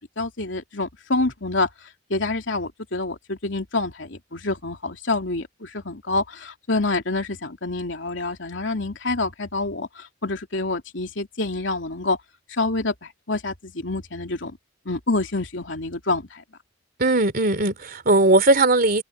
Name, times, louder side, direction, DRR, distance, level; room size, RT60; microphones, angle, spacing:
voice 1, 0.2-1.7 2.1-12.2 12.5-14.6 14.8-16.4, left 2 dB, 85° left, 3.0 m, -27 dB
voice 2, 17.0-19.0, right 2 dB, 50° right, 3.0 m, -18 dB
head